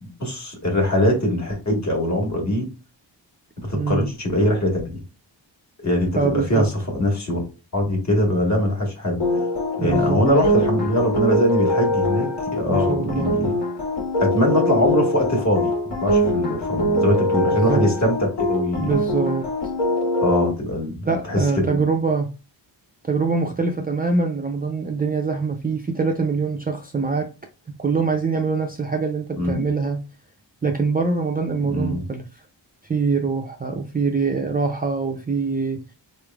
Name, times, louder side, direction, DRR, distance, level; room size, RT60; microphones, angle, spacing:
voice 1, 0.0-2.7 3.6-5.0 5.8-7.4 7.7-9.2 9.8-13.5 14.2-15.7 16.0-18.9 20.2-21.0 21.2-21.8 29.4-29.6 31.7-32.0, equal, 40° left, 1.5 m, -22 dB
voice 2, 3.7-4.0 6.1-6.7 9.8-10.2 12.7-13.4 17.6-17.8 18.8-19.5 21.1-22.3 23.0-27.3 27.8-30.0 30.6-32.3 32.9-35.8, right 4 dB, 20° right, 0.4 m, -24 dB
sound 1, 9.2-20.5, left 1 dB, 80° left, 2.1 m, -23 dB
4.3 x 3.1 x 2.3 m
wide cardioid pair, 150°, 44 cm